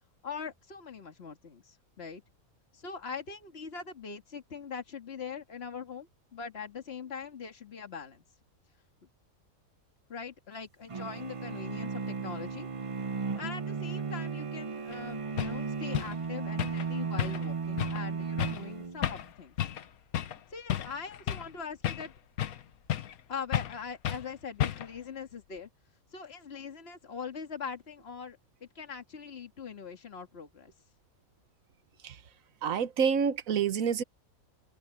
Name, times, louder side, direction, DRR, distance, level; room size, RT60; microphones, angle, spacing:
voice 1, 0.2-2.2 2.7-8.2 10.1-12.7 13.4-19.6 20.5-22.1 23.3-25.7 26.1-30.7, left 6 dB, 45° left, 2.1 m, -42 dB
sound 1, 10.9-19.2, right 5 dB, 35° right, 0.5 m, -35 dB
sound 2, 14.9-15.0 15.4-15.6 15.9-16.2 16.6-16.9 17.2-17.5 17.8-18.0 18.4-18.6 19.0-19.3 19.6-19.9 20.1-20.4 20.7-21.5 21.8-22.6 22.9-23.2 23.5-23.8 24.0-24.3 24.6-25.0, left 11 dB, 80° left, 1.4 m, -32 dB
voice 2, 32.6-34.0, right 7 dB, 70° right, 1.4 m, -27 dB
open air
omnidirectional pair, 1.5 m